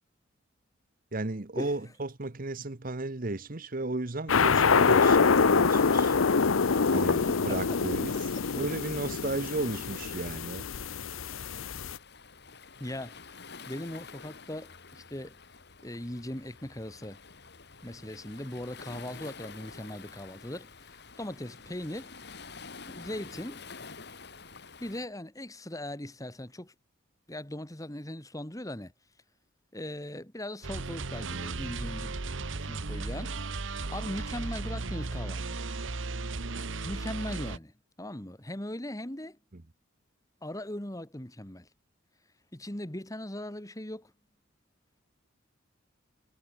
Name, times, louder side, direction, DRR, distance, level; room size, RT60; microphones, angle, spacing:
voice 1, 1.1-6.2 6.9-8.1 8.5-10.7, right 2 dB, 45° right, 1.1 m, -34 dB
sound 1, 4.3-12.0, left 5 dB, 85° left, 0.8 m, -25 dB
Waves surf, 6.7-25.1, left 4 dB, 55° left, 2.8 m, -49 dB
voice 2, 12.8-13.2 13.7-15.4 15.8-17.2 17.8-22.2 22.9-23.7 24.8-26.7 27.3-28.9 29.7-32.2 32.6-33.3 33.9-35.6 36.8-37.7 38.0-39.4 40.4-41.7 42.5-44.1, left 1 dB, 15° left, 2.0 m, -39 dB
sound 2, 30.6-37.6, right 3 dB, 70° right, 1.2 m, -35 dB
head